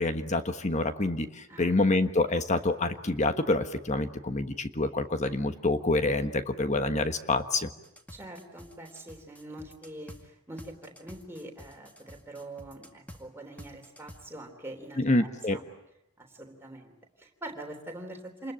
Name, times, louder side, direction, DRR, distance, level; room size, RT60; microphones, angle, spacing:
voice 1, 0.0-7.7 15.0-15.6, left 2 dB, 35° left, 9 dB, 1.3 m, -27 dB
sound 1, 7.8-10.2 10.6-13.2 13.6-14.2, equal, 5° left, 2.0 m, -49 dB
voice 2, 8.1-15.6 16.2-18.5, right 1 dB, 10° right, 2 dB, 3.4 m, -44 dB
28.0 x 21.0 x 9.0 m, 0.85 s
head